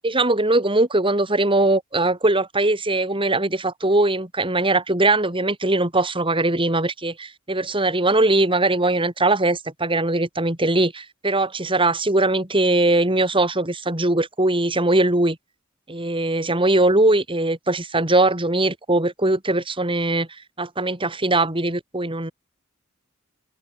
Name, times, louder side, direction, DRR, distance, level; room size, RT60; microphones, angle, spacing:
voice 1, 0.0-15.4 15.9-20.3 20.6-22.3, right 2 dB, 25° right, 4.0 m, -21 dB
head